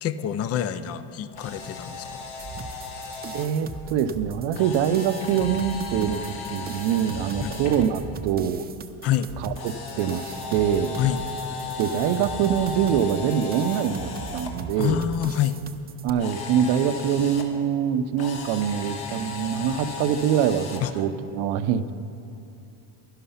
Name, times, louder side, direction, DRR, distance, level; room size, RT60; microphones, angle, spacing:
voice 1, 0.0-2.3 7.4-7.5 9.0-9.3 11.0-11.2 14.8-15.6 20.8-20.9, left 10 dB, 35° left, 14 dB, 0.4 m, -26 dB
Camera, 1.3-3.5 4.5-7.8 9.5-14.5 16.2-17.4 18.2-20.9, left 4 dB, 55° left, 1.7 m, -36 dB
sound 1, 2.4-16.1, right 5 dB, 20° right, 0.5 m, -39 dB
voice 2, 3.3-8.7 9.4-10.9 11.8-15.0 16.0-21.9, right 8 dB, 60° right, 11 dB, 0.7 m, -24 dB
11.5 x 11.5 x 5.6 m, 2.7 s
supercardioid pair, 110°, 47 cm